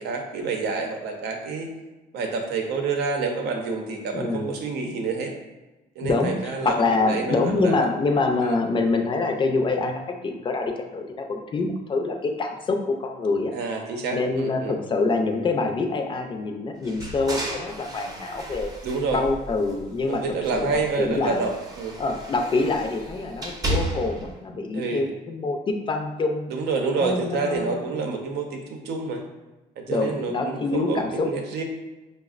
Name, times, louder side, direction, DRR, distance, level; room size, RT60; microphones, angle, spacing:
voice 1, 0.0-1.7 2.1-5.3 6.0-7.9 8.4-8.6 13.5-14.8 18.8-19.2 20.1-22.0 24.7-25.1 26.5-29.2 29.8-31.6, right 4 dB, 75° right, 2 dB, 0.7 m, -28 dB
voice 2, 4.1-4.4 6.0-13.5 14.1-18.7 19.1-21.5 22.0-26.5 27.0-27.8 29.9-31.3, left 3 dB, 30° left, 4 dB, 0.4 m, -25 dB
sound 1, 16.8-20.0 20.4-24.3, right 1 dB, 20° right, 0.6 m, -34 dB
5.0 x 2.0 x 2.4 m, 1.1 s
cardioid pair, 110°, 17 cm